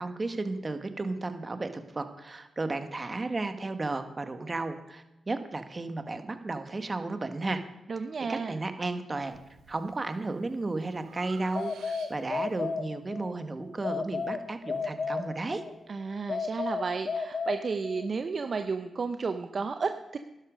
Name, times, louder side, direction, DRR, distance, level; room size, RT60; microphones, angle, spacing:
voice 1, 0.0-7.6 8.3-9.4 9.7-15.6, right 3 dB, 35° right, 8 dB, 1.5 m, -33 dB
voice 2, 7.9-8.6 15.9-20.2, right 4 dB, 55° right, 8 dB, 0.7 m, -32 dB
Breathing, 9.3-9.8 10.3-12.5, right 7 dB, 85° right, 1.8 m, -51 dB
sound 1, 11.5-13.3 13.8-15.7 16.3-18.2, left 4 dB, 60° left, 0.9 m, -33 dB
12.0 x 11.5 x 5.2 m, 1.0 s
supercardioid pair, 45°, 0 cm